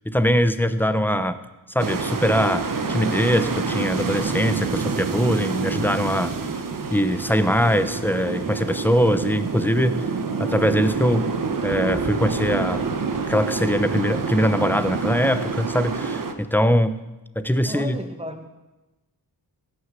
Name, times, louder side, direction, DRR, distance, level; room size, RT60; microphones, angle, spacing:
voice 1, 0.0-1.4 1.7-6.3 6.9-10.0 10.4-11.3 11.6-12.9 13.3-16.9 17.4-18.0, equal, 5° left, 11 dB, 0.9 m, -22 dB
sound 1, 1.8-16.3, right 4 dB, 50° right, 1.3 m, -27 dB
voice 2, 17.6-18.5, equal, 15° right, 5 dB, 1.9 m, -33 dB
16.0 x 6.5 x 7.5 m, 1.1 s
cardioid pair, 55°, 41 cm